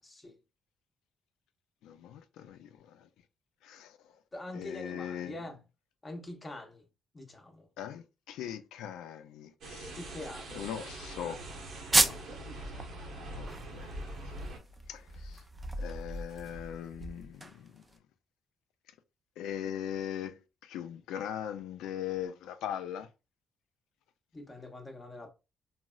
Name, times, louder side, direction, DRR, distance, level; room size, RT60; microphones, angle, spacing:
voice 1, 0.0-0.4 4.3-5.6 6.0-6.8 7.1-7.7 9.9-10.8 11.9-12.2 24.3-25.3, left 2 dB, 25° left, 0.7 m, -44 dB
voice 2, 1.8-3.1 3.6-4.0 4.5-5.4 7.8-9.9 10.5-11.4 12.0-12.2 13.2-13.9 14.3-14.6 14.9-15.4 15.8-17.8 19.4-23.1, left 10 dB, 90° left, 0.3 m, -40 dB
sound 1, 9.6-14.6, right 1 dB, 80° right, 0.8 m, -43 dB
sound 2, 11.9-12.4 12.8-12.9 13.3-17.9, right 2 dB, 20° right, 0.4 m, -32 dB
3.8 x 2.0 x 2.3 m
cardioid pair, 90°, 0 cm